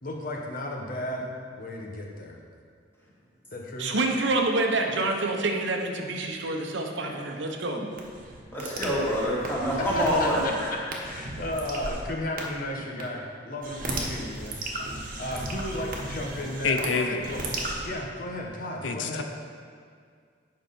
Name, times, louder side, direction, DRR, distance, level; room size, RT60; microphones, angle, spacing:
voice 1, 0.0-2.4 3.5-3.9 9.8-14.6 15.2-17.4 17.8-19.2, left 1 dB, 50° left, 0 dB, 1.1 m, -34 dB
voice 2, 3.8-7.8, right 2 dB, 75° right, 3 dB, 0.9 m, -27 dB
sound 1, 7.9-12.0 12.4-12.5 13.0-13.1 13.6-16.9 17.2-17.9, right 2 dB, 50° right, 1.2 m, -35 dB
voice 3, 8.5-10.4, equal, 15° left, -7 dB, 2.2 m, -26 dB
voice 4, 16.6-17.2 18.8-19.2, left 4 dB, 90° left, 5 dB, 0.7 m, -27 dB
9.0 x 5.7 x 5.4 m, 2.1 s
head